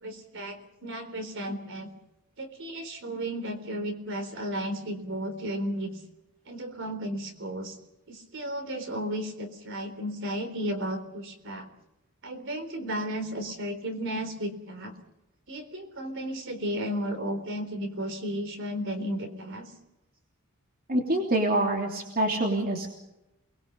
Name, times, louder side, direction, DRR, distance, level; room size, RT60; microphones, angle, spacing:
voice 1, 0.0-1.9 2.4-6.0 6.5-7.8 8.1-11.7 12.2-14.9 15.5-19.7, equal, 55° right, 7 dB, 3.8 m, -34 dB
voice 2, 20.9-22.9, right 1 dB, 40° right, 2 dB, 3.1 m, -26 dB
29.5 x 21.0 x 5.3 m, 0.93 s
head